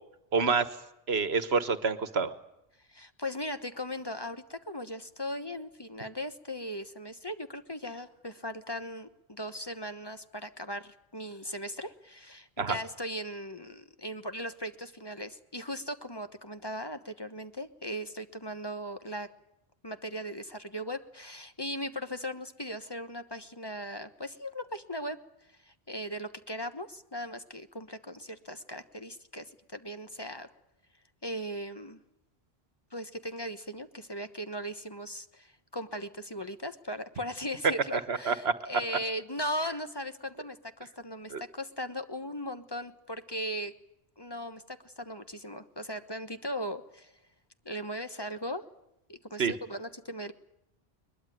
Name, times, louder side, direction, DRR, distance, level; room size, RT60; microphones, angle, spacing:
voice 1, 0.3-0.7 1.1-2.3 12.6-12.8 38.1-38.5 41.3-41.4 49.4-49.5, right 5 dB, 80° right, 12 dB, 1.5 m, -27 dB
voice 2, 2.9-19.3 19.8-25.2 25.6-30.5 31.2-32.0 32.9-43.7 44.2-47.1 47.6-48.6 49.1-50.3, equal, 25° left, 9 dB, 1.2 m, -38 dB
22.0 x 21.5 x 9.2 m, 0.84 s
omnidirectional pair, 1.0 m